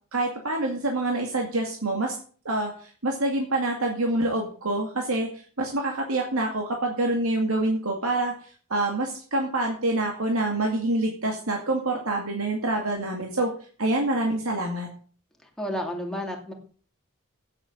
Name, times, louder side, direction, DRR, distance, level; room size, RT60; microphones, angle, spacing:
voice 1, 0.1-2.2 2.4-8.3 8.7-13.5 13.8-14.9, right 2 dB, 85° right, 1 dB, 2.3 m, -26 dB
voice 2, 15.6-16.5, equal, 5° left, 1 dB, 2.5 m, -31 dB
9.1 x 8.5 x 7.8 m, 0.43 s
head